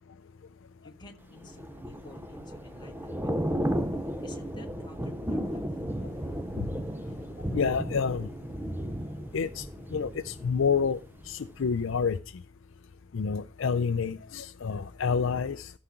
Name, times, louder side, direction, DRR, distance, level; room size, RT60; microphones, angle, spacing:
voice 1, 0.8-3.3 4.2-5.8, left 2 dB, 20° left, 2 dB, 1.6 m, -52 dB
Thunder / Rain, 1.4-11.3 11.6-11.9, equal, 10° right, 0.6 m, -34 dB
voice 2, 7.5-8.3 9.3-9.6 9.9-11.0 11.3-12.2 13.1-15.7, left 6 dB, 55° left, 11 dB, 0.4 m, -28 dB
14.0 x 4.9 x 5.8 m, 0.32 s
head